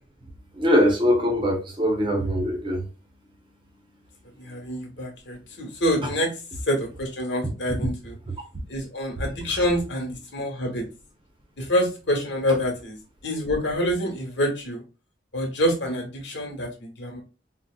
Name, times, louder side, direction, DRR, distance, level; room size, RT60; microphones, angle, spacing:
voice 1, 0.6-2.8 7.7-7.8 9.5-9.6, equal, 25° right, 0.7 m, -22 dB
voice 2, 4.4-6.3 6.7-8.1 8.7-10.8 11.6-13.0 13.2-14.8 15.3-17.2, equal, 80° left, 1.1 m, -26 dB
3.9 x 2.1 x 2.2 m
head